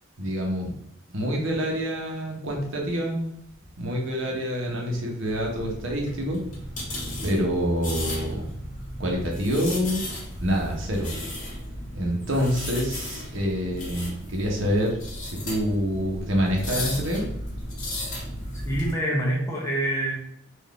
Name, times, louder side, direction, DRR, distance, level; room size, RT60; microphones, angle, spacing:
voice 1, 0.2-0.7 1.1-3.3 3.8-6.4 7.2-8.5 9.0-10.0 10.4-11.1 11.9-14.9 15.2-17.3, equal, 70° right, -1 dB, 0.9 m, -26 dB
sound 1, 5.3-18.9, left 1 dB, 40° left, 1.2 m, -35 dB
voice 2, 18.5-20.1, right 1 dB, 15° left, -4 dB, 0.8 m, -26 dB
4.0 x 2.6 x 3.2 m, 0.74 s
head